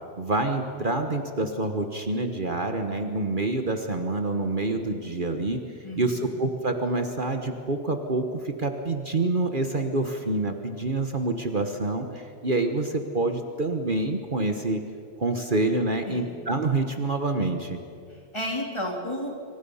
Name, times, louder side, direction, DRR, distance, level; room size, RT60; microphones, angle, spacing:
voice 1, 0.2-5.6 6.0-14.8 15.2-17.8, right 2 dB, 45° right, 5 dB, 1.4 m, -27 dB
voice 2, 5.8-6.3 16.1-16.4 18.1-19.4, left 1 dB, 25° left, 0 dB, 3.8 m, -33 dB
26.5 x 26.0 x 5.6 m, 2.4 s
omnidirectional pair, 1.2 m